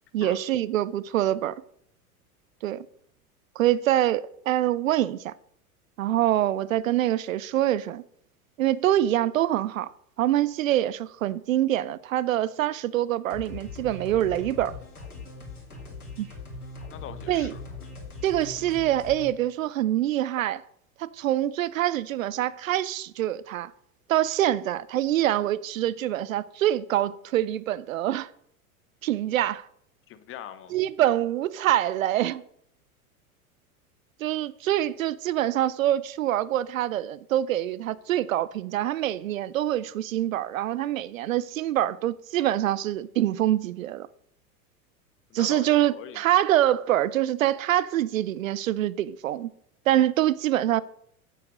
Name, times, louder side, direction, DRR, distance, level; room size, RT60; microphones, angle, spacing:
voice 1, 0.1-1.6 2.6-2.9 3.6-5.3 6.0-8.0 8.6-9.9 10.2-14.7 16.2-16.3 17.3-17.5 18.2-20.6 21.0-23.7 24.1-28.3 29.0-29.7 30.7-32.4 34.2-44.1 45.3-49.5 49.9-50.8, right 13 dB, 65° right, 0.6 m, -25 dB
sound 1, 13.3-19.3, left 3 dB, 80° left, 2.5 m, -41 dB
voice 2, 16.9-17.6 30.1-30.8 45.3-46.2, left 10 dB, 30° left, 1.0 m, -41 dB
8.8 x 7.8 x 6.3 m
figure-of-eight pair, 85°, 44 cm